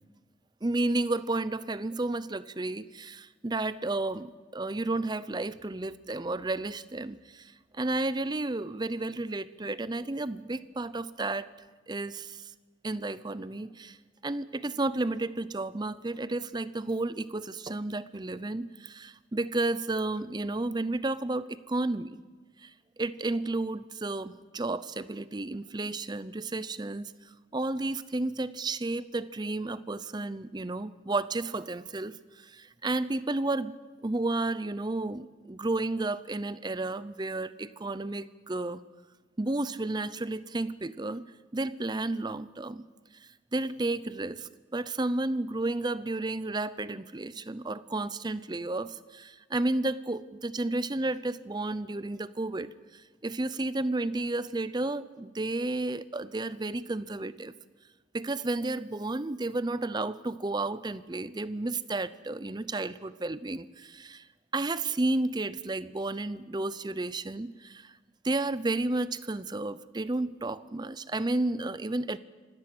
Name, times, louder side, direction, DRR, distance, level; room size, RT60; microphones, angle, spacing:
voice 1, 0.6-11.5 11.9-12.5 12.8-14.0 14.2-22.2 22.6-22.7 23.0-27.1 27.5-33.7 34.0-38.8 39.4-41.2 41.5-42.8 43.2-57.5 58.1-64.3 64.5-67.9 68.2-72.2, right 2 dB, 25° right, 16 dB, 0.6 m, -32 dB
25.5 x 17.5 x 6.2 m, 1.3 s
head